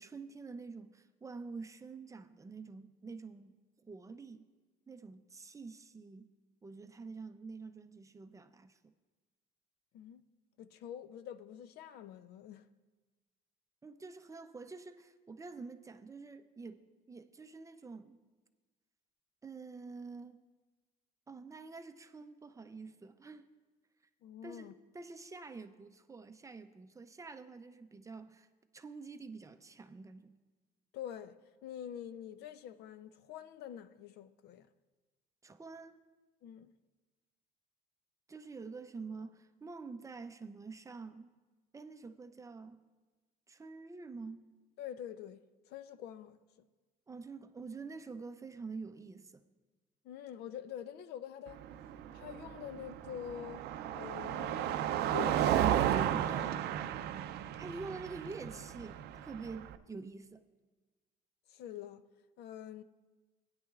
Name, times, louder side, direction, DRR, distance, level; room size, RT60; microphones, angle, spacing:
voice 1, 0.0-4.5 4.9-6.3 6.6-8.9 13.8-18.2 19.4-20.4 21.3-23.5 24.4-28.5 28.7-30.4 35.4-36.0 38.3-41.3 41.7-42.8 43.5-44.4 47.1-49.4 55.9-56.6 57.6-60.4, right 4 dB, 20° right, 0.5 m, -47 dB
voice 2, 10.6-12.7 24.2-24.7 30.9-31.4 31.6-34.7 36.4-36.7 44.8-46.4 50.0-51.6 52.1-53.6 53.9-55.8 61.5-62.0 62.4-62.8, left 10 dB, 75° left, 0.5 m, -46 dB
Car passing by, 51.5-59.8, right 11 dB, 75° right, 0.5 m, -34 dB
16.5 x 9.7 x 2.4 m
cardioid pair, 110°, 17 cm